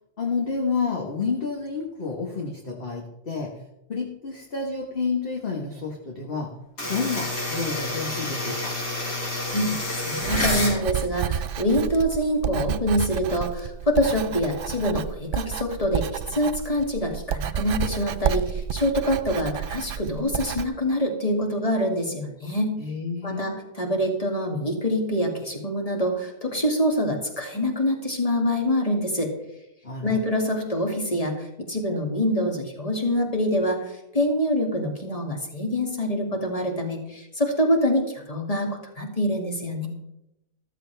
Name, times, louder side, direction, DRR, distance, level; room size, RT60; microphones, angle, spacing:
voice 1, 0.2-3.5 3.9-6.5 6.8-8.7 22.8-23.5 29.8-30.2, left 4 dB, 40° left, 0 dB, 1.6 m, -29 dB
sound 1, 6.8-10.8, left 2 dB, 65° left, 5.0 m, -28 dB
voice 2, 9.5-22.7 23.2-29.3 30.0-33.9 34.1-39.9, equal, 25° left, 1 dB, 2.4 m, -25 dB
Writing, 10.2-20.6, right 8 dB, 80° right, 0.5 m, -30 dB
14.0 x 14.0 x 3.4 m, 0.86 s
omnidirectional pair, 1.6 m